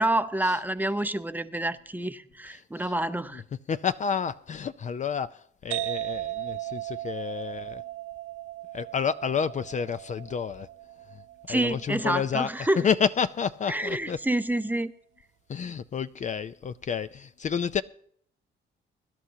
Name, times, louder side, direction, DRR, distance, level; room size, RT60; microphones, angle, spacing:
voice 1, 0.0-3.4 11.5-12.9 13.7-14.9, right 1 dB, 10° right, 0.6 m, -28 dB
voice 2, 3.7-7.8 8.7-10.7 11.5-12.5 12.8-14.2 15.5-17.8, left 7 dB, 40° left, 0.4 m, -29 dB
sound 1, 5.7-13.1, right 16 dB, 85° right, 0.4 m, -37 dB
23.5 x 11.5 x 2.8 m
cardioid pair, 90°, 20 cm